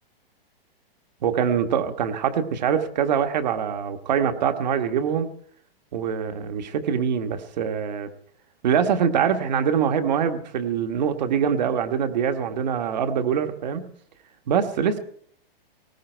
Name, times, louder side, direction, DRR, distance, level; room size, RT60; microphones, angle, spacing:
voice 1, 1.2-5.3 5.9-8.1 8.6-13.9 14.5-15.0, right 7 dB, 45° right, 8 dB, 1.4 m, -24 dB
19.0 x 15.5 x 4.5 m, 0.62 s
hypercardioid pair, 175°, 30 cm